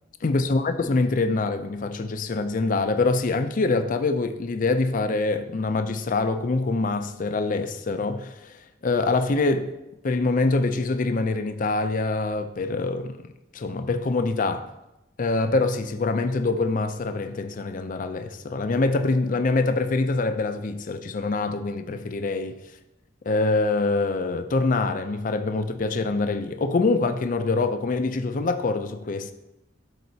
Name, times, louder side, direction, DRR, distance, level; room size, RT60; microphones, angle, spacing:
voice 1, 0.2-8.6 8.8-9.7 10.0-13.2 13.5-14.7 15.2-22.5 23.3-29.3, left 3 dB, 45° left, 0.4 m, -25 dB
12.0 x 4.1 x 2.8 m
head